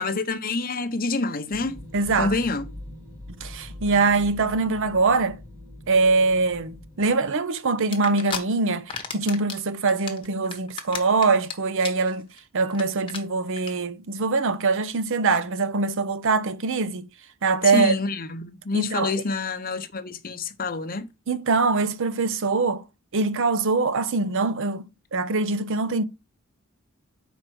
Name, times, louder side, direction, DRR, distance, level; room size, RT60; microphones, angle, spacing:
voice 1, 0.0-1.8 2.2-2.7 17.7-21.1, left 3 dB, 40° left, 0.8 m, -27 dB
sound 1, 1.5-7.1, left 1 dB, 15° right, 2.3 m, -42 dB
voice 2, 1.9-2.3 3.4-5.4 5.9-12.3 12.5-17.1 17.4-17.9 18.7-19.2 21.3-22.8 23.1-24.8 25.1-26.0, right 4 dB, 60° right, 0.7 m, -23 dB
sound 2, 7.9-8.4 8.7-9.6 9.9-11.5 11.8-12.1 12.4-12.5 12.7-12.8 13.1-13.2 13.6-13.7, left 6 dB, 25° left, 1.2 m, -32 dB
5.0 x 4.5 x 6.1 m
head